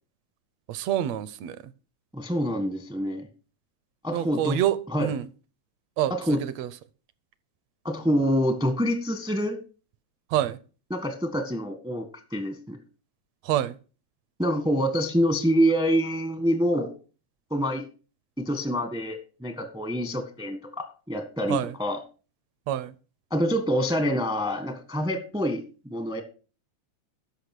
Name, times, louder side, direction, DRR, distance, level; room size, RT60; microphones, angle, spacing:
voice 1, 0.7-1.6 4.1-5.2 6.0-6.7 10.3-10.6 13.4-13.8 21.5-21.7 22.7-22.9, right 12 dB, 75° right, 1.7 m, -27 dB
voice 2, 2.1-3.3 4.0-4.6 4.9-5.1 6.1-6.4 7.8-9.6 10.9-12.0 12.3-12.8 14.4-16.9 17.5-17.8 18.4-22.0 23.3-25.6 25.9-26.2, equal, 5° right, 0.4 m, -26 dB
13.5 x 5.5 x 6.1 m
omnidirectional pair, 3.3 m